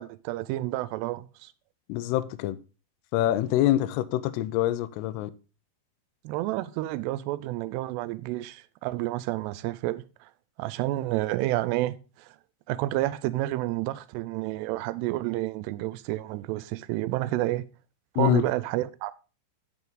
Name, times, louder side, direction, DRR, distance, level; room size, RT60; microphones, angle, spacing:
voice 1, 0.0-1.5 6.2-10.3 10.6-12.3 12.7-17.6 18.2-19.1, right 16 dB, 85° right, 2.6 m, -30 dB
voice 2, 1.9-2.6 3.1-5.3 18.2-18.4, left 14 dB, 80° left, 2.5 m, -25 dB
9.3 x 5.8 x 3.9 m
omnidirectional pair, 4.9 m